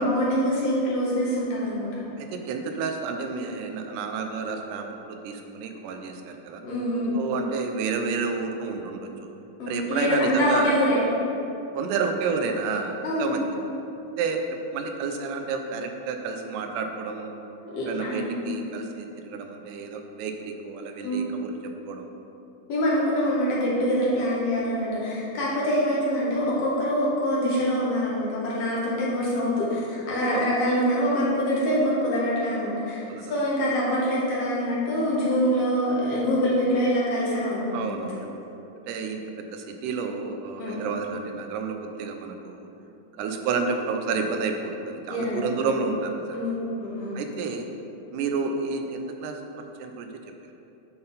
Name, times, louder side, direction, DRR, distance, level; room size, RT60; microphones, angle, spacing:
voice 1, 0.0-2.0 6.6-7.2 9.6-11.0 13.0-13.4 17.6-18.5 21.0-21.2 22.7-38.1 40.6-40.9 45.1-45.6 46.3-47.2, equal, 60° left, -7 dB, 2.1 m, -25 dB
voice 2, 2.2-6.6 7.1-9.1 9.7-10.7 11.7-13.4 14.2-17.3 17.9-22.1 30.3-30.5 33.1-33.4 37.7-38.4 38.9-42.7 43.2-46.4 47.1-47.7 48.1-49.4 49.8-50.1, right 4 dB, 90° right, 5 dB, 2.2 m, -30 dB
9.5 x 3.9 x 3.9 m, 2.9 s
omnidirectional pair, 3.6 m